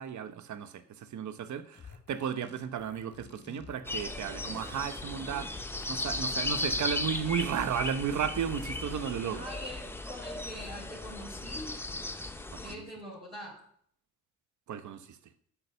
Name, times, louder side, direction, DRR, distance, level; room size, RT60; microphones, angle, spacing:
voice 1, 0.0-5.5 5.9-9.5 12.5-12.9 14.7-15.2, right 8 dB, 55° right, 0.9 m, -34 dB
sound 1, 1.7-9.1, left 3 dB, 30° left, 1.3 m, -51 dB
sound 2, 3.8-12.7, left 2 dB, 5° left, 0.9 m, -36 dB
voice 2, 9.3-11.7 12.5-13.6, equal, 15° right, 4.0 m, -44 dB
6.8 x 5.7 x 6.7 m
hypercardioid pair, 50°, 35 cm